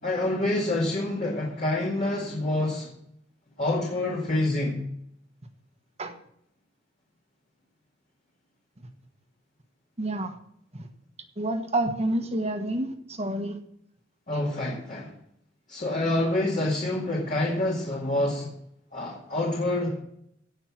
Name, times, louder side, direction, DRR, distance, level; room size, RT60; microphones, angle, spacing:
voice 1, 0.0-2.9 3.6-4.8 14.3-15.1 15.7-18.5 18.9-20.0, left 1 dB, 40° left, -4 dB, 2.2 m, -27 dB
voice 2, 10.0-10.3 10.7-10.9 11.4-13.6, right 1 dB, 35° right, 7 dB, 1.3 m, -28 dB
17.0 x 5.7 x 5.9 m, 0.73 s
head